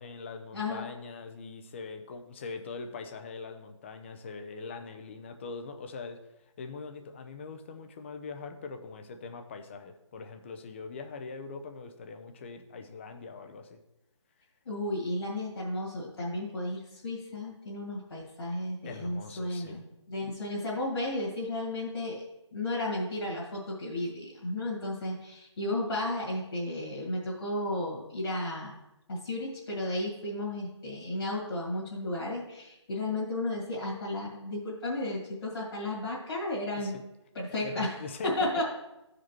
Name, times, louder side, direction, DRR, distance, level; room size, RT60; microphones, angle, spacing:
voice 1, 0.0-6.2 6.6-13.8 18.8-19.8 36.8-37.0 37.6-38.3, left 4 dB, 25° left, 6 dB, 0.5 m, -42 dB
voice 2, 0.5-0.9 14.7-22.2 22.5-28.7 29.1-36.9 37.3-37.9 38.2-38.6, left 1 dB, 50° left, -7 dB, 2.1 m, -33 dB
12.5 x 5.0 x 3.0 m, 0.94 s
figure-of-eight pair, 155°, 15 cm